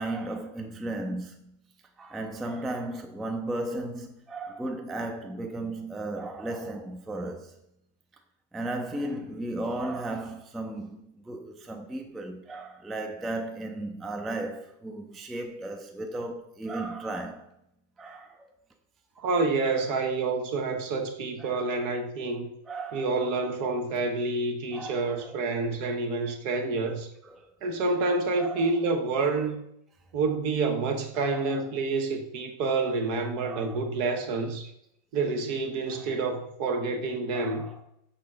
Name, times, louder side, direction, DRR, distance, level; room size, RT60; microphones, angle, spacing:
voice 1, 0.0-1.6 2.0-7.5 8.5-17.5 18.0-18.5 19.6-20.1 21.4-21.9 22.6-23.5 24.7-25.8 27.2-27.4 28.4-28.8 29.2-29.4 31.1-31.7 32.7-33.1 33.4-33.9 35.9-36.3 37.3-37.8, right 2 dB, ahead, 0.7 m, -36 dB
voice 2, 19.2-22.5 22.9-27.1 27.6-29.6 30.1-34.7 35.1-37.7, right 3 dB, 70° right, 1.5 m, -28 dB
7.3 x 6.6 x 5.9 m
omnidirectional pair, 1.8 m